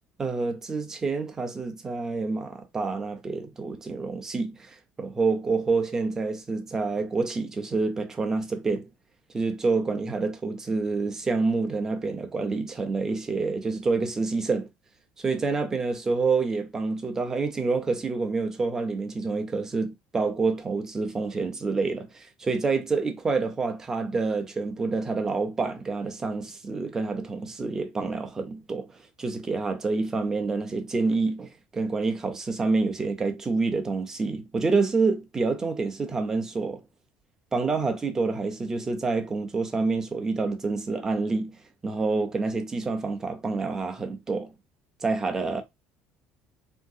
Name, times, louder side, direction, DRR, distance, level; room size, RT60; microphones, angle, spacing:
voice 1, 0.2-8.9 9.3-14.7 15.2-36.8 37.5-41.5 41.8-44.5 45.0-45.6, right 4 dB, 15° right, 0.5 m, -27 dB
3.7 x 2.7 x 2.3 m
cardioid pair, 165°, 3 cm